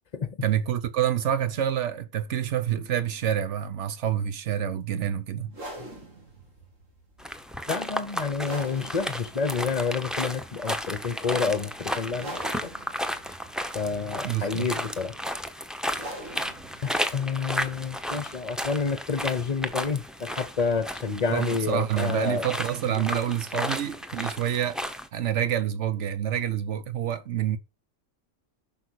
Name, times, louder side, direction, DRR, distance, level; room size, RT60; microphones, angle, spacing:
voice 1, 0.4-5.5 14.2-14.7 21.3-24.8 25.1-27.6, right 10 dB, 65° right, 1.2 m, -27 dB
sound 1, 5.4-20.8, right 1 dB, 90° right, 3.3 m, -45 dB
sound 2, 7.2-25.1, equal, ahead, 0.7 m, -34 dB
voice 2, 7.7-12.7 13.7-15.2 16.8-22.5 22.8-23.0 23.5-23.7, left 5 dB, 35° left, 0.8 m, -29 dB
10.5 x 6.1 x 4.6 m
omnidirectional pair, 1.3 m